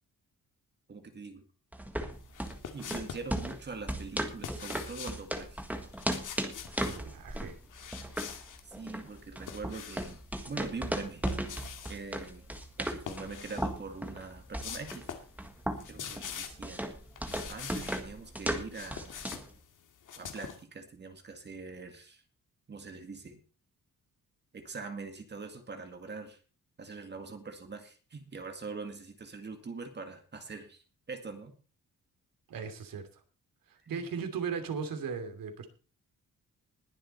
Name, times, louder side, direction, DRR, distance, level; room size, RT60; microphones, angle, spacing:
voice 1, 0.9-1.4 2.7-5.6 8.7-10.2 10.5-11.3 11.9-12.5 12.8-15.1 15.9-16.9 17.5-19.1 20.2-22.2 22.7-23.4 24.5-26.4 26.8-30.8 31.1-31.5 33.8-34.0, right 4 dB, 30° right, 6 dB, 2.1 m, -43 dB
sound 1, 1.7-19.5, right 1 dB, 5° right, 1.6 m, -37 dB
sound 2, 2.3-3.3 4.2-5.2 5.9-7.0 7.7-8.6 9.1-10.2 11.0-12.0 13.0-13.7 14.1-14.2 14.6-15.3 15.6-16.7 17.1-18.0 18.5-20.6, left 8 dB, 65° left, 2.1 m, -44 dB
voice 2, 6.8-7.6 32.5-33.0 33.7-35.7, right 6 dB, 80° right, 7 dB, 2.9 m, -37 dB
20.5 x 7.4 x 4.4 m, 0.36 s
wide cardioid pair, 180°, 34 cm